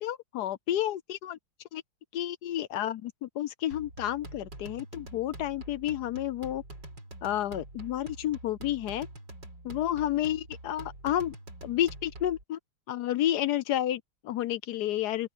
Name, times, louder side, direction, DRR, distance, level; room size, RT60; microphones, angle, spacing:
voice 1, 0.0-1.4 1.7-1.8 2.1-6.6 7.2-9.1 9.6-11.3 11.6-12.6 12.9-15.3, left 12 dB, 70° left, 1.2 m, -30 dB
sound 1, 3.7-12.4, right 2 dB, 90° right, 6.6 m, -46 dB
open air
omnidirectional pair, 1.9 m